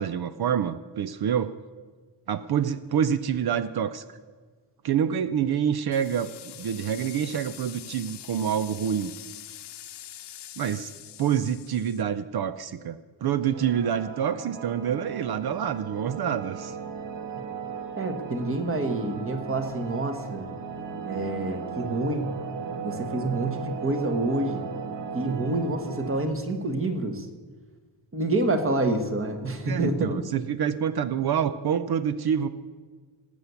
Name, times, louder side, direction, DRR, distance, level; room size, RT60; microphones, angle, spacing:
voice 1, 0.0-1.5 2.3-4.2 4.8-9.1 10.6-10.9 11.2-16.7 29.6-32.5, right 8 dB, 55° right, 13 dB, 0.6 m, -27 dB
sound 1, 5.9-12.0, left 11 dB, 65° left, 0.9 m, -44 dB
sound 2, 13.5-26.3, right 6 dB, 75° right, 1.5 m, -37 dB
voice 2, 18.0-20.5 21.0-22.3 22.8-24.7 25.1-27.3 28.1-30.2, right 2 dB, 30° right, 7 dB, 1.4 m, -27 dB
19.0 x 8.1 x 7.0 m, 1.5 s
wide cardioid pair, 165°, 44 cm